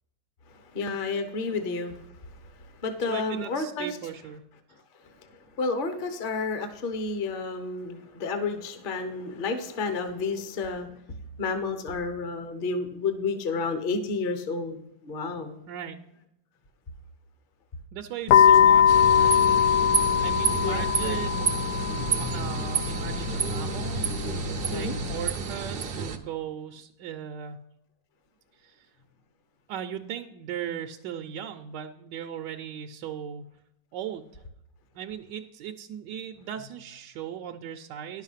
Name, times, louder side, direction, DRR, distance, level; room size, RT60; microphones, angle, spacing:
voice 1, 0.5-2.1 2.6-4.0 5.0-5.2 5.6-10.9 11.4-15.6 20.6-21.2 24.7-25.0, left 4 dB, 35° left, 8 dB, 0.9 m, -31 dB
voice 2, 3.1-4.4 15.7-16.0 17.9-19.4 20.2-21.6 21.9-27.6 28.6-28.9 29.7-33.4 33.9-34.3 34.9-38.2, right 9 dB, 75° right, 4 dB, 1.2 m, -38 dB
sound 1, 18.3-25.3, left 8 dB, 70° left, 1.0 m, -22 dB
sound 2, 18.9-26.2, right 6 dB, 60° right, 0.6 m, -30 dB
10.5 x 6.4 x 5.6 m, 0.84 s
omnidirectional pair, 2.0 m